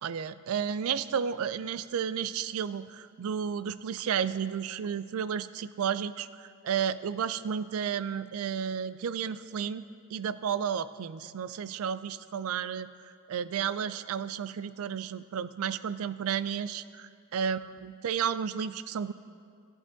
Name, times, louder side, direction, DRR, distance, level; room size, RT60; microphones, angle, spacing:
voice 1, 0.0-12.9 13.3-19.1, right 7 dB, 80° right, 15 dB, 0.4 m, -32 dB
14.0 x 8.6 x 3.9 m, 2.2 s
head